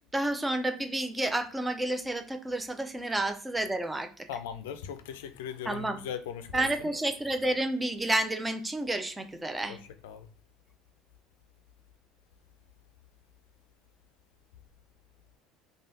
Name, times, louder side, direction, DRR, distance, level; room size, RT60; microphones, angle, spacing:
voice 1, 0.1-4.3 5.7-6.0 6.5-9.8, right 1 dB, 15° right, 0.4 m, -30 dB
voice 2, 4.3-6.7 10.0-10.3, left 8 dB, 85° left, 0.3 m, -38 dB
3.2 x 2.2 x 2.6 m
supercardioid pair, 85°, 0 cm